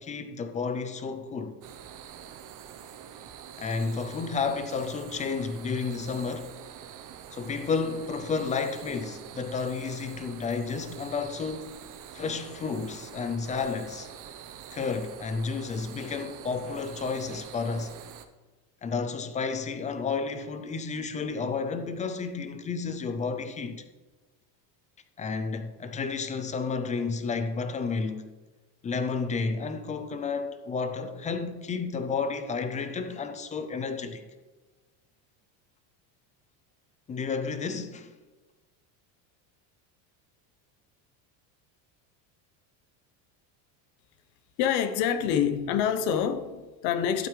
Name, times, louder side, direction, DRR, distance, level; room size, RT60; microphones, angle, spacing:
voice 1, 0.0-1.6 3.6-6.5 7.3-11.8 12.1-14.1 14.7-18.0 18.8-23.8 25.2-28.3 28.8-34.3 37.1-38.1, left 4 dB, 20° left, 0.3 m, -31 dB
sound 1, 1.6-18.2, right 9 dB, 40° right, 0.7 m, -46 dB
voice 2, 44.6-47.3, left 8 dB, 80° left, 1.1 m, -26 dB
12.0 x 8.5 x 3.2 m
cardioid pair, 135°, 49 cm